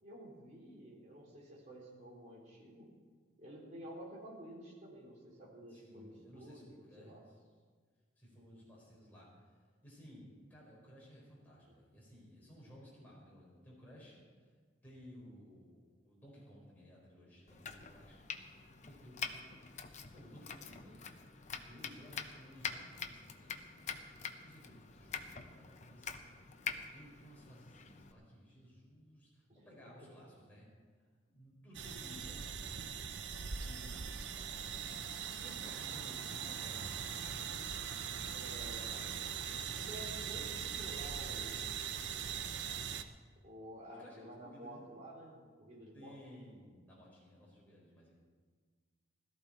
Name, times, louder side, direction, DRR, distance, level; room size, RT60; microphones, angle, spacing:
voice 1, 0.0-2.9 3.4-7.2 11.7-11.8 29.5-29.6 38.3-39.3 39.7-41.9 43.4-46.1, equal, 35° right, -4 dB, 4.1 m, -51 dB
voice 2, 5.7-7.4 8.2-9.5 9.8-14.5 14.8-18.2 18.9-19.5 19.8-21.1 21.5-23.9 24.4-26.4 26.9-30.7 31.3-32.5 33.5-34.9 35.2-37.7 38.6-39.1 39.4-39.7 43.8-44.8 45.9-48.1, equal, 10° left, -6 dB, 4.2 m, -57 dB
Domestic sounds home sounds, 17.5-28.1, left 6 dB, 35° left, 0.7 m, -46 dB
sound 1, 31.7-43.0, right 7 dB, 65° right, 0.7 m, -41 dB
17.0 x 13.5 x 4.3 m, 1.5 s
head